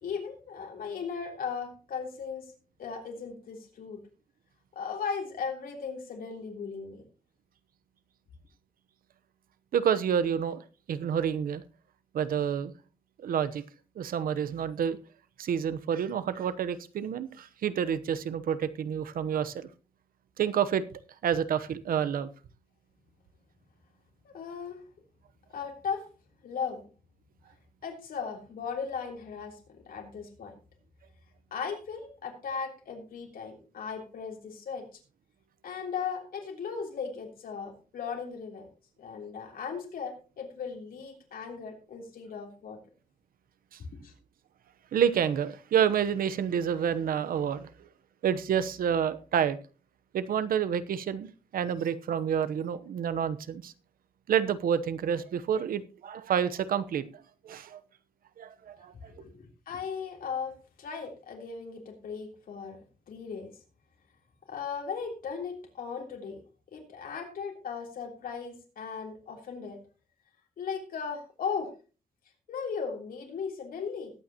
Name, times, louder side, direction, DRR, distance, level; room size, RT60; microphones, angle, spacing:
voice 1, 0.0-2.5 2.8-4.0 4.7-7.0 24.2-24.8 25.5-26.1 26.4-26.9 27.8-30.5 31.5-35.0 35.6-38.7 39.0-42.8 44.0-44.1 59.1-59.3 59.7-62.8 63.1-63.5 64.5-66.4 66.7-69.8 70.6-71.7 72.5-74.1, left 6 dB, 85° left, 2 dB, 3.4 m, -37 dB
voice 2, 9.7-10.6 10.9-11.6 12.1-12.7 13.2-13.6 14.0-15.0 15.4-19.7 20.4-20.8 21.2-22.3 43.7-43.8 44.9-47.7 48.2-49.6 50.1-53.7 54.3-57.1 57.4-57.8 58.4-59.1, right 8 dB, 90° right, 14 dB, 0.9 m, -28 dB
20.5 x 8.8 x 2.9 m, 0.34 s
wide cardioid pair, 120°, 14 cm